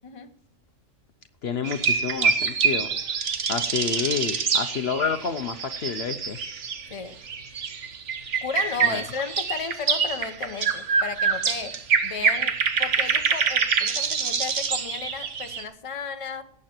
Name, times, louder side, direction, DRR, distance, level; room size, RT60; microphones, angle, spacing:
voice 1, 1.4-2.9 3.5-6.4 8.8-9.0, left 6 dB, 60° left, 9 dB, 1.0 m, -29 dB
sound 1, 1.6-6.9 7.2-15.6, right 6 dB, 70° right, 1.4 m, -26 dB
voice 2, 8.4-16.4, left 5 dB, 30° left, 7 dB, 1.0 m, -34 dB
18.5 x 8.5 x 4.5 m, 0.64 s
omnidirectional pair, 1.3 m